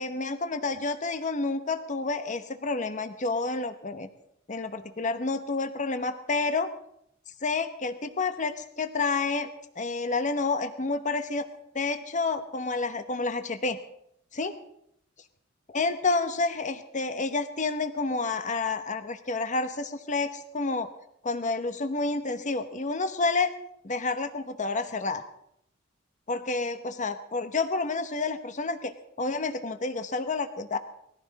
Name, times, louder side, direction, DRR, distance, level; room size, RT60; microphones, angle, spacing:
voice 1, 0.0-4.1 4.5-6.7 7.4-9.5 9.8-11.5 11.7-13.8 14.3-14.5 15.7-20.9 21.2-23.5 23.8-25.2 26.3-28.9 29.2-30.8, left 3 dB, 40° left, 9 dB, 1.0 m, -29 dB
20.0 x 15.0 x 4.1 m, 0.72 s
head